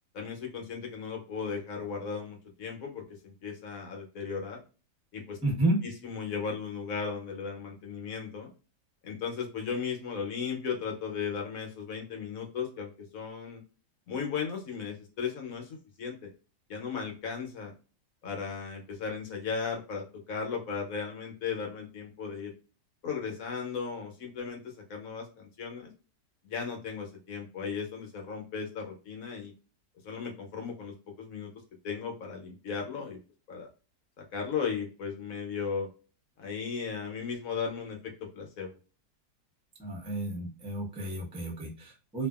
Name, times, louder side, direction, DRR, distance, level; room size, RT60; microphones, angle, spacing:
voice 1, 0.1-4.6 5.1-5.4 6.0-8.5 9.0-13.6 14.1-16.3 16.7-17.7 18.2-22.5 23.0-25.9 26.4-29.5 30.0-31.5 31.8-33.2 33.5-33.7 34.2-35.9 36.4-38.8, left 6 dB, 60° left, 2 dB, 1.2 m, -36 dB
voice 2, 5.4-5.8 39.8-42.3, right 2 dB, 5° right, -1 dB, 0.5 m, -31 dB
2.7 x 2.5 x 2.3 m, 0.34 s
omnidirectional pair, 1.8 m